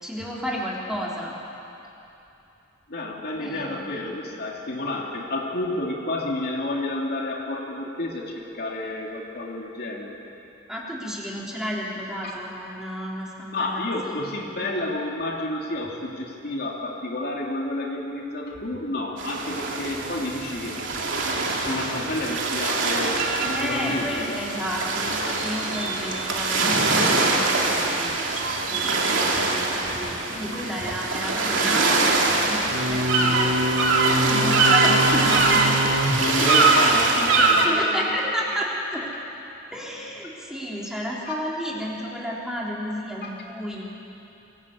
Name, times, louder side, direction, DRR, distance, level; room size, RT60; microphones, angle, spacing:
voice 1, 0.0-1.4 3.4-4.1 10.7-14.2 23.5-28.2 28.7-33.6 34.0-35.7 36.4-36.6 37.6-38.6 38.9-39.1 39.7-43.8, equal, 5° right, -5 dB, 3.5 m, -32 dB
voice 2, 2.9-10.2 12.2-12.3 13.5-20.8 21.6-23.2 23.4-24.4 36.2-38.2 41.3-41.4 43.2-43.3, left 2 dB, 55° left, -1 dB, 2.7 m, -30 dB
sound 1, 19.2-37.7, right 3 dB, 75° right, 2.7 m, -22 dB
24.0 x 17.0 x 8.4 m, 2.9 s
head